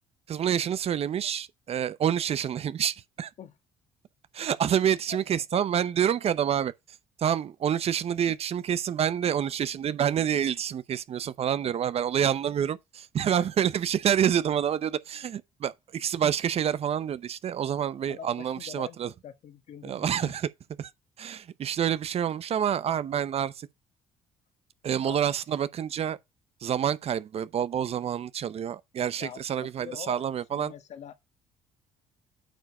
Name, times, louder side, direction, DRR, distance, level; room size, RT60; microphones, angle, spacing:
voice 1, 0.3-3.3 4.3-19.1 19.8-20.5 20.8-20.9 21.2-23.7 24.8-26.2 26.6-30.7, right 9 dB, 50° right, 0.7 m, -28 dB
voice 2, 5.1-5.6 11.6-11.7 13.4-13.5 18.1-19.0 19.2-20.3 25.0-25.3 29.2-30.2 30.5-31.1, left 9 dB, 60° left, 1.6 m, -44 dB
9.1 x 4.6 x 4.3 m
supercardioid pair, 70°, 13 cm